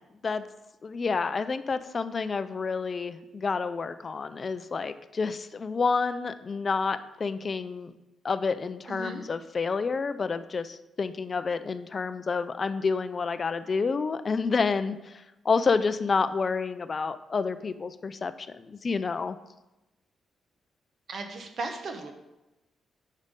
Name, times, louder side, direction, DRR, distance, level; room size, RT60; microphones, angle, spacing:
voice 1, 0.8-7.9 8.2-19.4, left 4 dB, 35° left, 12 dB, 0.4 m, -29 dB
voice 2, 8.9-9.2 21.1-22.1, right 3 dB, 50° right, 5 dB, 0.9 m, -36 dB
8.9 x 5.4 x 3.6 m, 0.99 s
cardioid pair, 135°, 0 cm